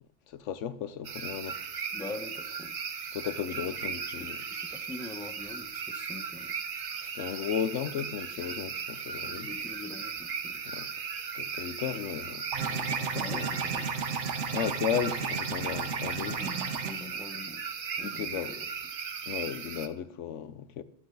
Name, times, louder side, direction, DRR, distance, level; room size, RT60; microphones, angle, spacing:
voice 1, 0.3-1.6 3.1-4.4 7.0-9.5 10.7-10.9 11.3-13.5 14.5-16.4 18.0-18.5 19.3-20.8, left 8 dB, 85° left, 1.1 m, -35 dB
sound 1, 1.0-19.9, right 6 dB, 50° right, 0.9 m, -37 dB
voice 2, 1.9-2.8 4.2-6.6 9.2-10.7 13.2-13.9 16.2-17.6 18.0-18.7, left 2 dB, 5° left, 0.8 m, -43 dB
sound 2, 12.5-16.9, right 5 dB, 75° right, 1.3 m, -33 dB
22.0 x 7.7 x 3.9 m
omnidirectional pair, 1.2 m